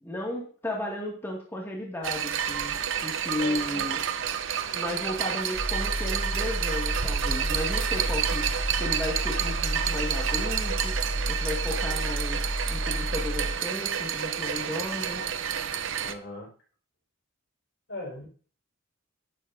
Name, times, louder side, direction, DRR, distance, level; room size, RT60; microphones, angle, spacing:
voice 1, 0.0-4.0 4.7-8.5 8.8-10.9 11.3-12.4 12.7-15.2, left 1 dB, 10° left, -2 dB, 2.2 m, -34 dB
sound 1, 2.0-16.1, right 8 dB, 65° right, 0.8 m, -30 dB
voice 2, 3.4-3.9 16.0-16.5 17.9-18.3, left 2 dB, 60° left, 0 dB, 5.2 m, -38 dB
sound 2, 5.5-13.5, equal, 10° right, 3.2 m, -31 dB
11.5 x 11.0 x 2.8 m, 0.41 s
head